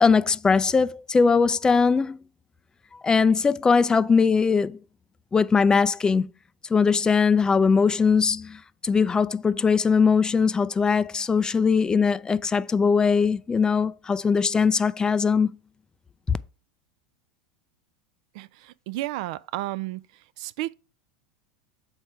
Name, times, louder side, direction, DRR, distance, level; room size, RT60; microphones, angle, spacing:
voice 1, 0.0-2.2 3.0-4.8 5.3-6.3 6.7-15.5 16.3-16.4, left 5 dB, 20° left, 0.4 m, -21 dB
voice 2, 18.3-20.0 20.4-20.7, right 17 dB, 60° right, 0.4 m, -32 dB
6.4 x 4.4 x 4.6 m
hypercardioid pair, 90°, 4 cm